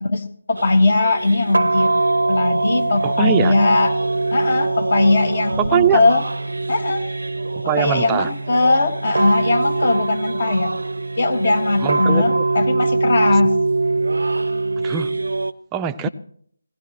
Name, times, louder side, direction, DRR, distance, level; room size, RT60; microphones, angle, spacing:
voice 1, 0.0-1.9 2.3-3.9 4.3-6.2 6.7-7.0 7.8-10.7 11.2-13.6, left 2 dB, 50° left, 1.8 m, -19 dB
sound 1, 0.6-15.5, right 2 dB, 70° right, 0.5 m, -22 dB
voice 2, 3.0-3.6 5.6-6.0 7.7-8.3 11.8-12.5 13.3-13.4 14.8-15.2 15.7-16.1, right 9 dB, 10° right, 0.5 m, -22 dB
19.0 x 16.5 x 3.0 m
figure-of-eight pair, 155°, 0 cm